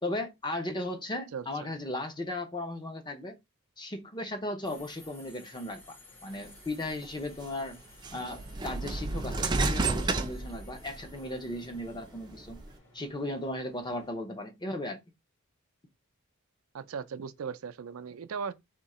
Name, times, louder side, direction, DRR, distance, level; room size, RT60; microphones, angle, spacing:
voice 1, 0.0-3.4 3.8-7.8 8.1-12.6 12.9-15.0, left 1 dB, 20° left, 0.7 m, -36 dB
Subway metro underground, 4.6-14.1, left 1 dB, 65° left, 2.1 m, -55 dB
sound 1, 7.0-7.1 8.0-11.1 11.6-12.7, right 3 dB, 20° right, 0.5 m, -31 dB
voice 2, 16.7-18.5, right 6 dB, 80° right, 0.4 m, -37 dB
3.6 x 2.8 x 4.2 m
head